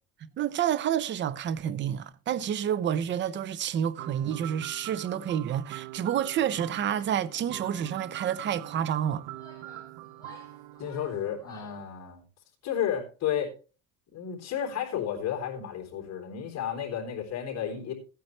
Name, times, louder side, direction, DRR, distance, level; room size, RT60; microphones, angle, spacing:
voice 1, 0.2-9.3, right 9 dB, 35° right, 0.6 m, -29 dB
sound 1, 4.0-11.8, right 17 dB, 85° right, 0.7 m, -43 dB
Female speech woman speaking / Yell, 6.8-7.3 7.6-8.4 9.1-11.9, left 3 dB, 10° left, 3.1 m, -55 dB
voice 2, 10.8-12.2 12.6-13.5 14.1-17.9, left 9 dB, 50° left, 3.6 m, -32 dB
15.5 x 9.2 x 3.2 m
cardioid pair, 140°, 34 cm